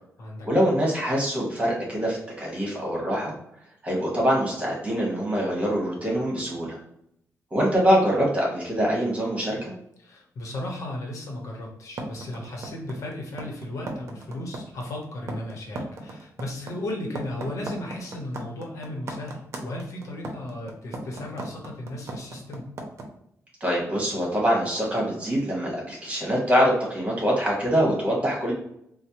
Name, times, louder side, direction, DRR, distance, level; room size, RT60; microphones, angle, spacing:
voice 1, 0.4-3.3 3.8-6.8 7.5-9.7 23.6-28.5, equal, 25° right, -4 dB, 1.4 m, -24 dB
voice 2, 10.0-22.7, left 1 dB, 70° left, 0 dB, 0.9 m, -35 dB
sound 1, 12.0-23.0, right 2 dB, 55° right, 0.7 m, -35 dB
4.3 x 2.1 x 2.9 m, 0.74 s
wide cardioid pair, 145°, 6 cm